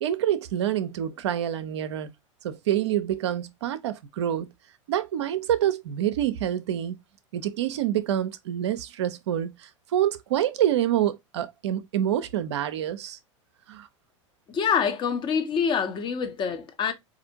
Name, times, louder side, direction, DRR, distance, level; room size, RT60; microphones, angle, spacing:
voice 1, 0.0-2.1 2.4-4.5 4.9-7.0 7.3-13.2 13.7-13.9, right 11 dB, 60° right, 0.5 m, -27 dB
voice 2, 14.5-16.9, left 6 dB, 30° left, 0.8 m, -26 dB
4.1 x 2.5 x 2.7 m
figure-of-eight pair, 85°, 16 cm